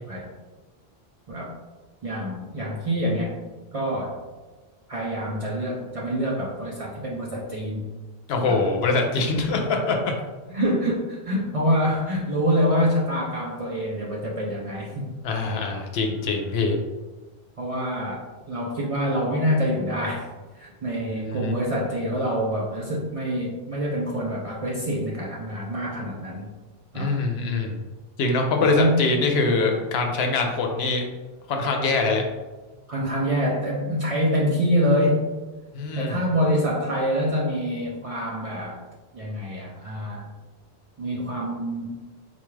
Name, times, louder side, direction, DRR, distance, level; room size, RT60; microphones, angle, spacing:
voice 1, 2.0-3.3 3.7-4.2 4.9-7.9 8.4-8.7 10.5-15.1 17.6-20.3 20.6-26.5 26.9-27.2 28.6-29.0 29.7-29.8 32.9-35.3 36.0-38.8 39.1-40.3 41.0-42.0, equal, 50° right, -3 dB, 0.4 m, -26 dB
voice 2, 8.3-10.1 15.2-16.8 21.2-21.5 26.9-27.8 28.2-31.0 31.5-32.2 35.7-36.2, left 3 dB, 75° left, 3 dB, 0.8 m, -23 dB
4.1 x 2.3 x 3.1 m, 1.2 s
omnidirectional pair, 1.1 m